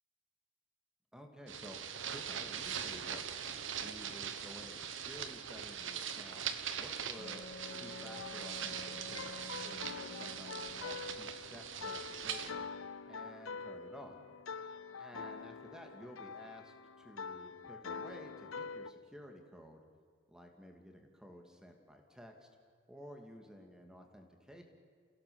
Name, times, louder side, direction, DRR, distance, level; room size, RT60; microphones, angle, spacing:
voice 1, 1.1-1.8 2.1-6.5 6.7-7.5 7.7-9.3 9.6-12.7 13.1-14.2 14.9-19.8 20.3-22.5 22.9-24.6, equal, 5° right, 3 dB, 2.4 m, -53 dB
sound 1, 1.5-12.5, right 8 dB, 70° right, 1.4 m, -42 dB
Wind instrument woodwind instrument, 7.2-11.3, left 3 dB, 55° left, 1.4 m, -51 dB
sound 2, 7.6-18.9, left 5 dB, 80° left, 0.7 m, -46 dB
30.0 x 16.5 x 7.1 m, 2.1 s
head